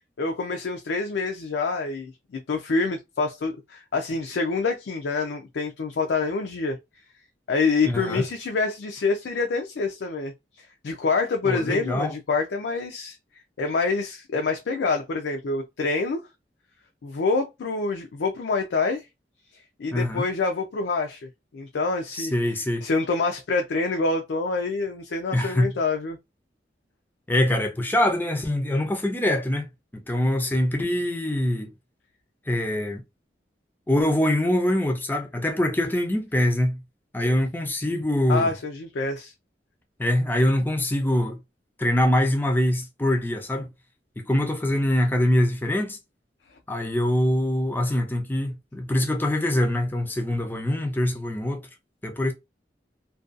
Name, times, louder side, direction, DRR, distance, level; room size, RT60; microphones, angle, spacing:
voice 1, 0.2-6.8 7.5-13.2 13.6-16.2 17.0-19.0 19.8-21.3 21.5-22.3 22.8-26.2 38.3-39.3, left 4 dB, 80° left, 0.4 m, -26 dB
voice 2, 7.9-8.3 11.4-12.1 19.9-20.2 22.1-22.8 25.3-25.7 27.3-31.7 32.5-33.0 33.9-36.8 37.1-38.5 40.0-41.4 41.8-43.7 44.2-46.0 46.7-51.6 52.0-52.3, left 1 dB, 10° left, 0.4 m, -24 dB
2.5 x 2.2 x 2.4 m
head